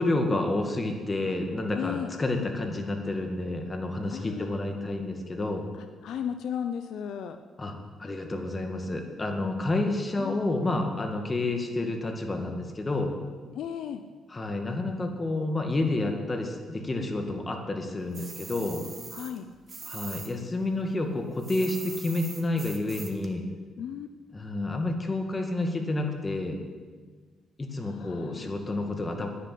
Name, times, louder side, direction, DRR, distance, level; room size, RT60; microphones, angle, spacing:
voice 1, 0.0-5.6 7.6-7.7 8.0-13.1 14.3-18.8 19.9-23.4 24.3-26.6 27.6-29.3, left 2 dB, 25° left, 4 dB, 2.0 m, -29 dB
voice 2, 1.7-2.1 4.1-4.6 5.7-7.4 10.1-10.4 13.5-14.0 19.1-19.5 23.8-24.1 27.8-28.5, left 8 dB, 75° left, 8 dB, 0.6 m, -35 dB
sound 1, 18.1-20.3 20.6-23.3, right 4 dB, 35° right, 1.6 m, -42 dB
10.0 x 10.0 x 8.4 m, 1.5 s
cardioid pair, 90°, 0 cm